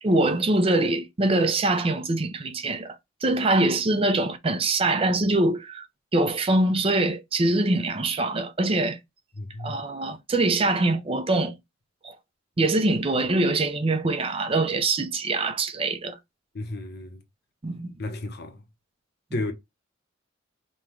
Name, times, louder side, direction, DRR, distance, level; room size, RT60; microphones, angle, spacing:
voice 1, 0.0-5.8 6.1-9.0 9.6-11.6 12.0-12.2 12.6-16.2 17.6-17.9, right 2 dB, 30° right, 0.5 m, -24 dB
voice 2, 9.4-9.8 16.5-17.2 18.0-18.6 19.3-19.5, left 2 dB, 55° left, 0.8 m, -33 dB
5.4 x 2.2 x 3.0 m
head